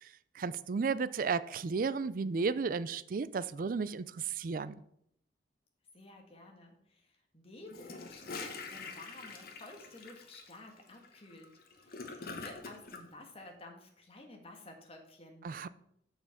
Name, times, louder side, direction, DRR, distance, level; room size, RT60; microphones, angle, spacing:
voice 1, 0.4-4.8 15.4-15.7, right 5 dB, 50° right, 0.4 m, -33 dB
voice 2, 5.9-7.0 7.3-11.5 11.8-15.5, left 2 dB, 35° left, 1.7 m, -52 dB
Gurgling / Toilet flush, 7.7-13.0, left 4 dB, 55° left, 1.3 m, -45 dB
7.0 x 6.6 x 5.8 m
head